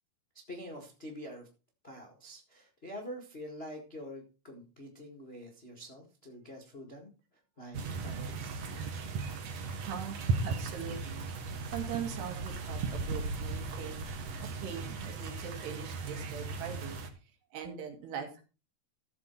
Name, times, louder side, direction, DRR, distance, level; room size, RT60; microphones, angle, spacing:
voice 1, 0.5-1.5 1.8-7.1 7.6-8.6, equal, 55° left, 1 dB, 0.6 m, -46 dB
sound 1, 7.7-17.1, right 4 dB, 60° right, 1.8 m, -37 dB
voice 2, 9.9-14.0 14.4-17.0 17.5-18.4, right 8 dB, 80° right, 4 dB, 4.1 m, -42 dB
14.5 x 7.2 x 4.5 m, 0.34 s
omnidirectional pair, 4.6 m